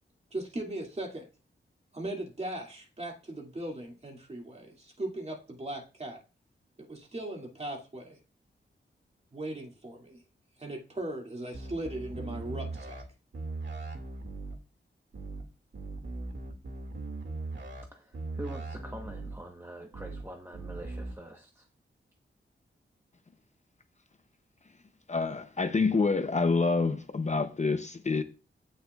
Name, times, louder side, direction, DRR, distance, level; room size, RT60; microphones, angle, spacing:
voice 1, 0.3-1.3 1.9-6.2 6.8-8.2 9.3-10.2 10.6-13.0, right 1 dB, 30° right, 2.3 m, -38 dB
sound 1, 11.5-13.0 13.3-14.5 15.1-15.4 15.7-17.8 18.1-19.3 19.9-20.2 20.5-21.1, right 3 dB, 65° right, 2.1 m, -39 dB
voice 2, 17.8-21.7, right 1 dB, 10° right, 1.0 m, -45 dB
voice 3, 25.1-28.2, left 4 dB, 35° left, 0.6 m, -27 dB
16.0 x 6.5 x 2.3 m
wide cardioid pair, 125°, 21 cm